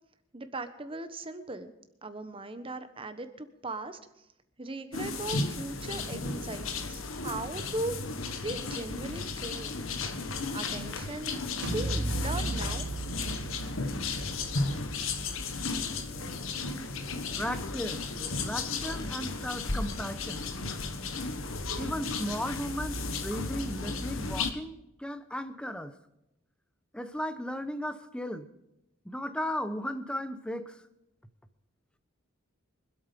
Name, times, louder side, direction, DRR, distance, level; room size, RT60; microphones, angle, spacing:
voice 1, 0.3-1.7 2.0-4.2 4.6-8.0 8.4-9.8 10.5-11.4 11.7-12.9, right 2 dB, 25° right, 9 dB, 1.2 m, -38 dB
sound 1, 4.9-24.5, left 3 dB, 85° left, 1.5 m, -34 dB
sound 2, 11.6-17.3, right 2 dB, 60° right, 1.3 m, -37 dB
voice 2, 17.4-20.5 21.8-26.0 26.9-28.5 29.0-30.8, equal, 5° left, 11 dB, 0.9 m, -36 dB
24.5 x 8.5 x 5.3 m, 0.88 s
head